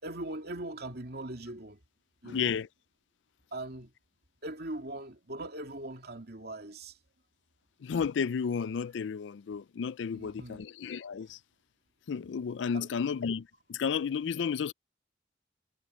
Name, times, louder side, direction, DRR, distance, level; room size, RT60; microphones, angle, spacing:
voice 1, 0.0-1.8 2.2-2.6 3.5-3.9 4.4-7.0 10.1-10.6 12.7-12.9, right 1 dB, 55° right, 2.5 m, -40 dB
voice 2, 2.2-2.7 7.8-11.4 12.1-14.7, left 6 dB, 75° left, 0.4 m, -32 dB
head